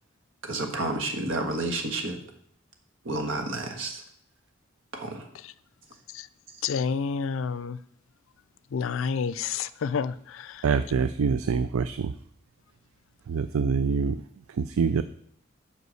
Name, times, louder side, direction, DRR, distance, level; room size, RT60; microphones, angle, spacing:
voice 1, 0.4-2.2 3.0-4.0 4.9-5.2, right 2 dB, 70° right, 1.4 m, -30 dB
voice 2, 6.6-7.8 8.7-10.6, left 6 dB, 75° left, 0.4 m, -29 dB
voice 3, 10.6-12.1 13.3-14.2 14.6-15.0, right 5 dB, 85° right, 0.4 m, -25 dB
8.1 x 5.1 x 6.4 m
head